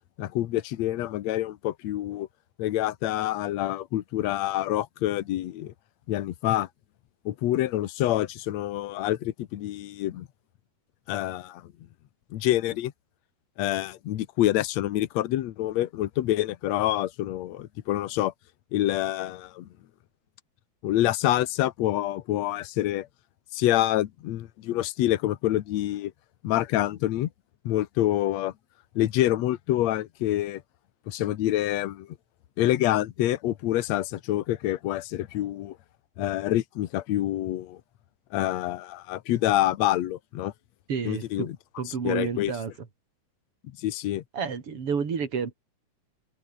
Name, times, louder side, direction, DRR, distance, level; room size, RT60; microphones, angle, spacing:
voice 1, 0.2-2.3 2.6-5.7 6.1-6.7 7.3-10.3 11.1-11.7 12.3-12.9 13.6-18.3 18.7-19.7 20.8-23.1 23.5-26.1 26.4-27.3 27.7-28.5 29.0-30.6 31.1-32.1 32.6-35.8 36.2-37.8 38.3-40.5 41.1-41.6 41.9-42.5 43.8-44.2, left 14 dB, 75° left, 1.7 m, -27 dB
voice 2, 40.9-41.5 41.8-42.7 44.3-45.5, right 6 dB, 40° right, 3.5 m, -30 dB
omnidirectional pair, 4.5 m